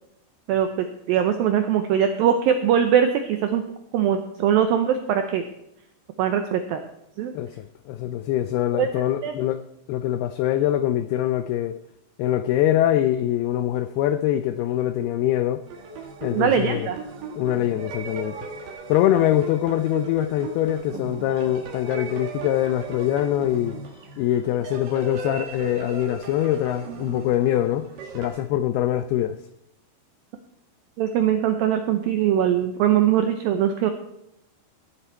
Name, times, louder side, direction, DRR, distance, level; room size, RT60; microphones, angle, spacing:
voice 1, 0.5-3.6 3.9-5.4 6.2-6.8 7.2-7.3 8.8-8.9 9.2-9.3 16.3-17.0 31.0-33.9, right 9 dB, 85° right, 2.1 m, -21 dB
voice 2, 7.4-9.6 9.9-11.8 12.2-15.6 16.2-16.9 17.4-18.4 18.9-23.8 24.2-27.9 28.1-29.4, left 12 dB, 85° left, 2.2 m, -23 dB
sound 1, 15.6-28.4, right 4 dB, 60° right, 3.0 m, -37 dB
18.5 x 10.0 x 4.5 m
omnidirectional pair, 5.1 m